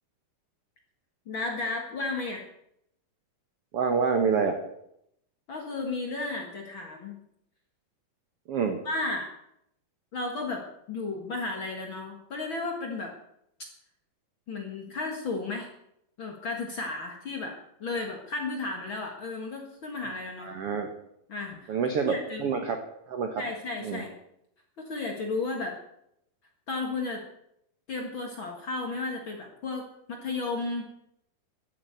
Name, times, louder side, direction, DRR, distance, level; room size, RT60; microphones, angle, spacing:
voice 1, 1.2-2.4 5.5-7.2 8.8-9.3 10.1-13.1 14.5-15.7 16.2-20.5 21.3-21.7 22.1-22.5 23.4-24.1 24.8-25.8 26.7-27.2 27.9-30.9, left 3 dB, 45° left, 2 dB, 1.7 m, -33 dB
voice 2, 3.7-4.6 8.5-8.8 20.4-20.9 21.7-22.8 23.1-23.4 23.8-24.0, right 5 dB, 75° right, 5 dB, 1.3 m, -27 dB
14.0 x 8.0 x 8.0 m, 0.76 s
omnidirectional pair, 4.4 m